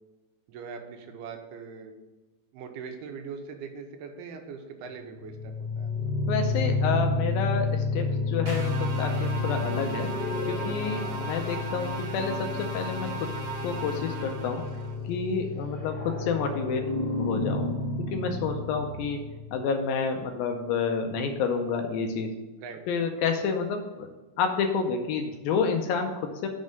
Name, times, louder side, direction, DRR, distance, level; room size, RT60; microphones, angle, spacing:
voice 1, 0.5-1.9 2.5-5.9 10.9-11.2 22.6-22.8, right 5 dB, 80° right, 4 dB, 2.8 m, -41 dB
sound 1, 5.1-19.7, left 3 dB, 20° left, 1.0 m, -31 dB
voice 2, 6.3-13.3 13.6-14.6 15.0-16.9 17.2-17.7 18.1-19.2 19.5-22.3 22.9-24.1 24.4-26.5, left 5 dB, 80° left, 5 dB, 2.2 m, -29 dB
sound 2, 8.5-14.9, right 2 dB, 55° right, 2.0 m, -37 dB
6.4 x 5.3 x 6.6 m, 1.2 s
omnidirectional pair, 4.5 m